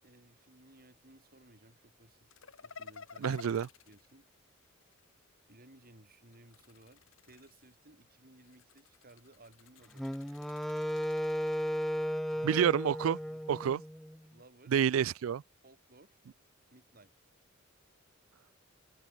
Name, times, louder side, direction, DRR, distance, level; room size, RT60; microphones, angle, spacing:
voice 1, 0.0-3.4 3.9-4.3 5.5-10.0 12.3-12.6 13.2-13.7 14.3-14.8 15.6-16.2 16.7-17.1, right 2 dB, 45° right, 4.3 m, -60 dB
sound 1, 2.3-5.1 6.3-7.9 8.4-12.7, left 5 dB, 70° left, 1.4 m, -53 dB
voice 2, 3.2-3.7 12.4-13.2 13.5-13.8 14.7-15.4, right 8 dB, 75° right, 0.4 m, -28 dB
Wind instrument woodwind instrument, 10.0-14.2, equal, ahead, 0.5 m, -35 dB
open air
head